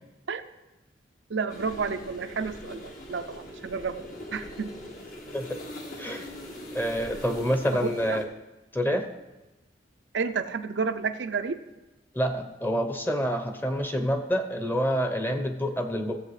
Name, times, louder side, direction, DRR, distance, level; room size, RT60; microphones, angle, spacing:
voice 1, 1.3-4.1 4.3-4.7 7.7-8.2 10.1-11.6, right 5 dB, 85° right, 8 dB, 0.6 m, -31 dB
sound 1, 1.5-8.2, left 1 dB, 50° left, 1.4 m, -42 dB
voice 2, 6.7-8.3 8.7-9.0 12.1-16.2, equal, 10° left, 6 dB, 0.8 m, -27 dB
16.5 x 7.6 x 3.2 m, 1.1 s
head